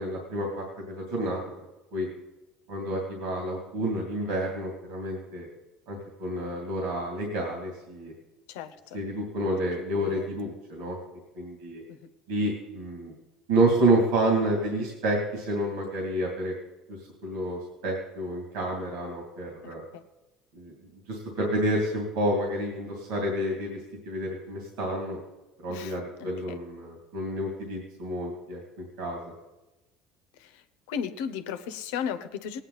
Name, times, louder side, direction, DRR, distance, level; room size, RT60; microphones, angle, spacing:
voice 1, 0.0-1.4 1.9-2.1 2.7-5.5 5.9-8.1 8.9-11.0 11.3-11.8 12.3-13.1 13.5-16.5 17.2-19.8 20.5-20.7 21.1-23.8 24.1-25.2 25.6-28.6 29.0-29.3, right 1 dB, 80° right, 0 dB, 2.6 m, -29 dB
voice 2, 8.5-9.0 9.4-9.5 9.9-10.3 11.9-12.1 19.9-20.0 25.7-26.6 30.4-30.6 30.9-32.6, left 7 dB, 85° left, 11 dB, 0.8 m, -36 dB
18.5 x 9.0 x 4.0 m, 1.0 s
supercardioid pair, 105°, 0 cm